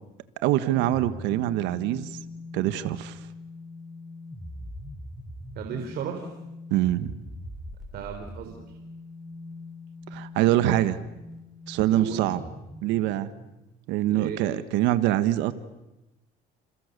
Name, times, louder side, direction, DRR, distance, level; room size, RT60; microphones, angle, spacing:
voice 1, 0.4-2.1 2.5-3.2 6.7-7.1 10.1-11.0 11.7-12.4 12.8-13.3 13.9-15.5, right 14 dB, 80° right, 12 dB, 1.5 m, -24 dB
sound 1, 0.7-13.5, left 1 dB, ahead, 7.3 m, -42 dB
voice 2, 5.6-6.3 7.9-8.6 11.9-12.2 14.1-14.4, right 7 dB, 60° right, 4 dB, 3.8 m, -34 dB
29.0 x 29.0 x 6.8 m, 0.97 s
cardioid pair, 115°, 18 cm